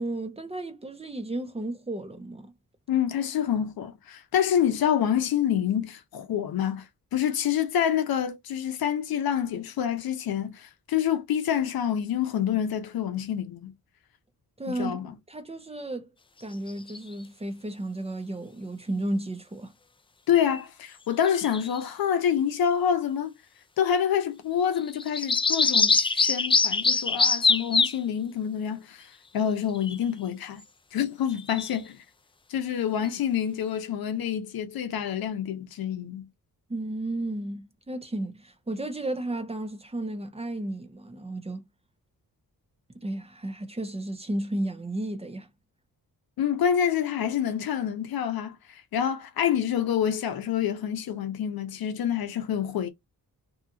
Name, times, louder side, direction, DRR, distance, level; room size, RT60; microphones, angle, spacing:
voice 1, 0.0-2.5 14.6-16.1 16.4-19.7 36.7-41.6 42.9-45.5, right 1 dB, 15° right, 0.8 m, -33 dB
voice 2, 2.9-6.8 7.1-13.7 14.7-15.1 20.3-23.3 23.8-29.1 29.3-30.6 30.9-32.0 32.5-36.3 46.4-52.9, left 9 dB, 80° left, 0.7 m, -27 dB
sound 1, 16.7-17.0 20.4-20.6 21.2-21.8 24.8-28.0 29.7-30.0 31.3-31.8, left 4 dB, 15° left, 0.3 m, -24 dB
2.8 x 2.4 x 2.7 m
cardioid pair, 75°, 36 cm